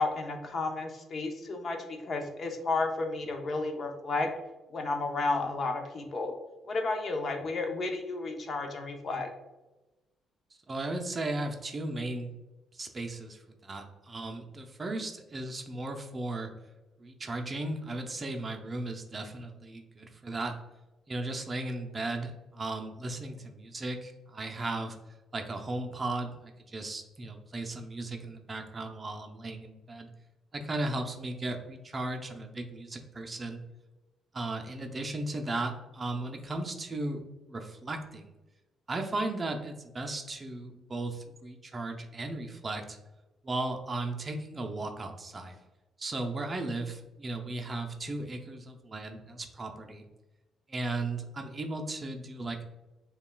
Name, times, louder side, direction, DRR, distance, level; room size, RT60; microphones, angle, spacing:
voice 1, 0.0-4.3 4.7-6.3 6.7-9.3, left 3 dB, 50° left, 4 dB, 0.7 m, -32 dB
voice 2, 10.7-12.3 12.7-16.5 17.0-20.6 21.1-25.0 25.3-30.1 30.5-33.6 34.3-37.2 37.5-38.3 38.9-43.0 43.4-45.6 46.0-50.0 50.7-52.6, right 2 dB, 30° right, 3 dB, 0.5 m, -36 dB
6.9 x 2.3 x 2.2 m, 1.1 s
cardioid pair, 90°, 0 cm